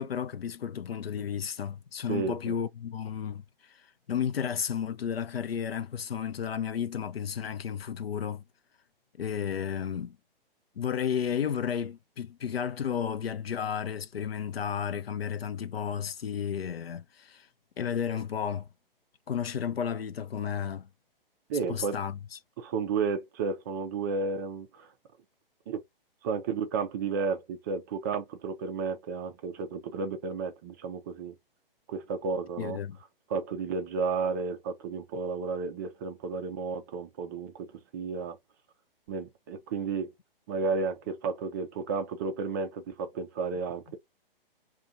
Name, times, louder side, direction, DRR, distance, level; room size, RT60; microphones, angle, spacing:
voice 1, 0.0-3.8 4.1-8.4 9.2-10.2 10.8-17.5 17.8-18.7 19.3-20.9 21.7-22.4 32.6-33.0, left 8 dB, 85° left, 0.5 m, -33 dB
voice 2, 2.1-2.5 21.5-22.0 22.6-24.9 25.7-25.8 26.2-31.3 31.9-32.8 33.3-37.7 37.9-38.4 39.1-40.1 40.5-44.0, right 5 dB, 20° right, 0.4 m, -32 dB
2.4 x 2.2 x 2.6 m
figure-of-eight pair, 125°, 29 cm